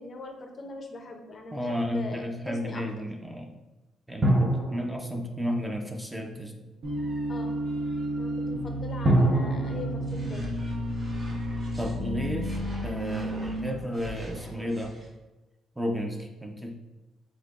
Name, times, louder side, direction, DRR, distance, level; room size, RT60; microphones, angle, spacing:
voice 1, 0.0-2.8 7.3-7.6 8.2-10.5, left 2 dB, 45° left, 4 dB, 0.5 m, -41 dB
voice 2, 1.5-3.5 4.1-6.5 11.7-14.9 15.8-16.8, equal, 10° right, 3 dB, 0.6 m, -33 dB
sound 1, 4.2-6.6 9.1-12.1, right 1 dB, 25° right, 0.9 m, -29 dB
sound 2, 6.8-13.7, equal, 65° right, 0.9 m, -32 dB
sound 3, 10.0-11.9 12.4-15.1, equal, 45° right, 1.3 m, -44 dB
7.5 x 2.7 x 2.4 m, 1.1 s
cardioid pair, 90°, 0 cm